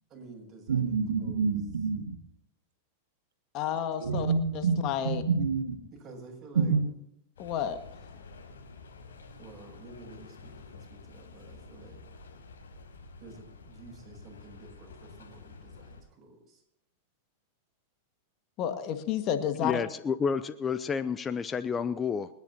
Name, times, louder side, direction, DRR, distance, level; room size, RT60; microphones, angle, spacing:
voice 1, 0.1-1.4 5.9-6.8 9.4-12.0 13.2-16.6, right 3 dB, 30° right, 0 dB, 7.2 m, -50 dB
voice 2, 0.7-2.2 4.0-5.8 6.6-6.8, right 5 dB, 80° right, 3 dB, 2.0 m, -27 dB
voice 3, 3.5-4.3 4.5-5.2 7.4-7.8 18.6-19.8, left 9 dB, 45° left, 7 dB, 1.8 m, -31 dB
sound 1, 7.4-16.0, left 4 dB, 85° left, 5.9 m, -50 dB
voice 4, 19.6-22.3, left 6 dB, 20° left, 13 dB, 0.7 m, -30 dB
29.5 x 10.5 x 2.9 m, 0.77 s
hypercardioid pair, 100°, 0 cm